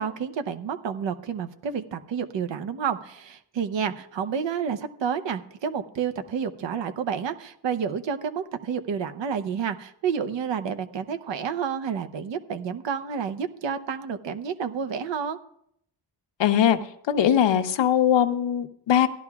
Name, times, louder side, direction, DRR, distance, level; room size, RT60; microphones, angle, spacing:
voice 1, 0.0-15.4, right 7 dB, 80° right, 9 dB, 0.8 m, -30 dB
voice 2, 16.4-16.8 17.1-19.1, left 9 dB, 80° left, 9 dB, 0.8 m, -20 dB
16.5 x 12.0 x 2.3 m, 0.71 s
wide cardioid pair, 175°, 43 cm